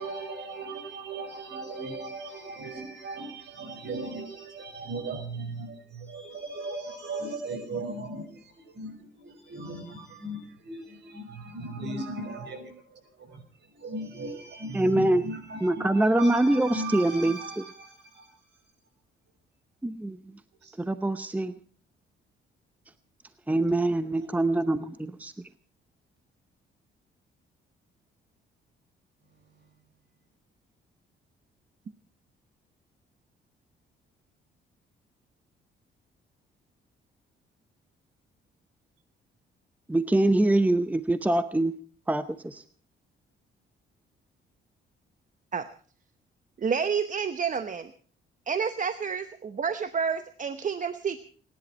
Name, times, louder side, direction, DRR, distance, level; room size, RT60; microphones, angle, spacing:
voice 1, 0.0-8.3 8.8-8.9 9.2-12.7 13.3-13.4 13.8-18.2 23.9-24.4 24.7-24.8, right 2 dB, 60° right, 5.6 m, -37 dB
voice 2, 14.7-15.3 15.6-17.7 19.8-20.2 20.8-21.5 23.5-25.3 39.9-41.7 42.1-42.6, right 1 dB, 10° right, 0.8 m, -24 dB
voice 3, 46.6-47.9 48.5-51.2, right 6 dB, 40° right, 0.9 m, -29 dB
28.0 x 11.0 x 4.3 m
cardioid pair, 90°, 20 cm